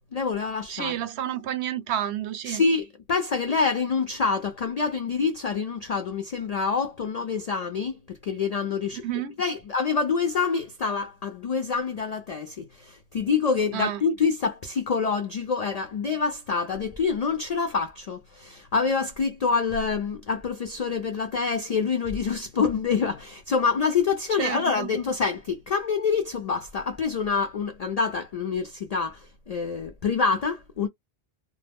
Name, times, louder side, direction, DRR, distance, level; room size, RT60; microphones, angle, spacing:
voice 1, 0.1-1.0 2.5-9.0 9.4-30.9, left 5 dB, 55° left, 0.4 m, -26 dB
voice 2, 0.7-2.6 9.0-9.4 13.7-14.0 24.4-24.9, right 11 dB, 85° right, 0.9 m, -30 dB
2.0 x 2.0 x 3.4 m
omnidirectional pair, 1.1 m